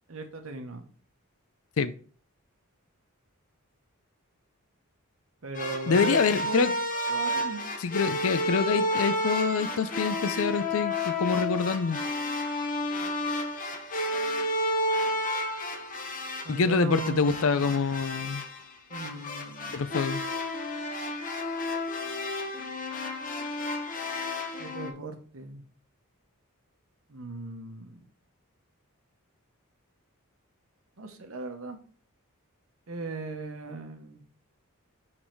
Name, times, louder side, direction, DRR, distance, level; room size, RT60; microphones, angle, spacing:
voice 1, 0.1-0.8 5.4-6.7 7.1-7.6 16.4-17.8 18.9-20.0 24.6-25.6 27.1-28.0 31.0-31.8 32.9-34.2, right 3 dB, 65° right, 1.1 m, -37 dB
sound 1, 5.5-24.9, left 1 dB, 35° left, 0.9 m, -31 dB
voice 2, 5.9-6.7 7.8-12.0 16.5-18.4 19.7-20.2, left 5 dB, 65° left, 0.4 m, -26 dB
6.1 x 3.9 x 4.5 m
head